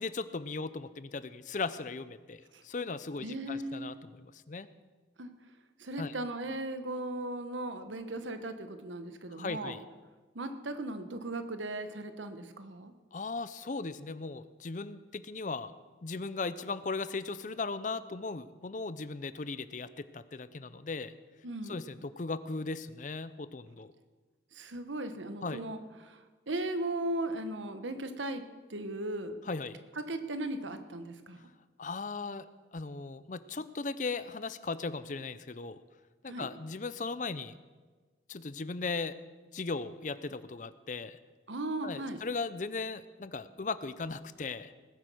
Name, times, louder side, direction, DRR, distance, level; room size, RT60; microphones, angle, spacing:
voice 1, 0.0-4.7 6.0-6.1 9.3-9.8 13.1-15.7 16.0-21.1 21.6-23.9 25.4-25.6 29.4-29.8 31.8-32.5 32.7-35.8 36.2-37.5 38.3-39.2 39.5-41.2 41.8-44.7, left 3 dB, 40° left, 14 dB, 0.5 m, -37 dB
voice 2, 3.2-4.0 5.2-5.3 5.8-9.7 10.3-12.9 21.4-21.8 24.5-28.4 28.7-29.4 30.1-31.4 36.3-36.5 41.5-42.2, right 1 dB, 85° right, 9 dB, 1.2 m, -37 dB
19.5 x 8.2 x 6.2 m, 1.4 s
head